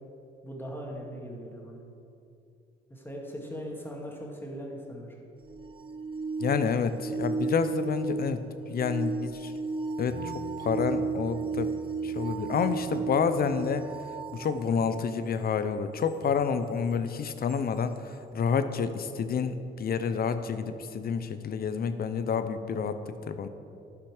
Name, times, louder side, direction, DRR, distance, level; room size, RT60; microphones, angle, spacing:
voice 1, 0.4-1.8 2.9-5.1, equal, 10° left, -1 dB, 1.9 m, -39 dB
sound 1, 5.4-15.2 17.5-17.6, right 4 dB, 25° right, 0.7 m, -34 dB
voice 2, 6.4-9.5 10.0-11.7 12.0-13.9 14.3-23.5, left 6 dB, 50° left, 11 dB, 0.6 m, -29 dB
Bass guitar, 10.1-16.3, left 3 dB, 70° left, 1.0 m, -50 dB
12.0 x 5.7 x 4.9 m, 2.6 s
cardioid pair, 90°, 20 cm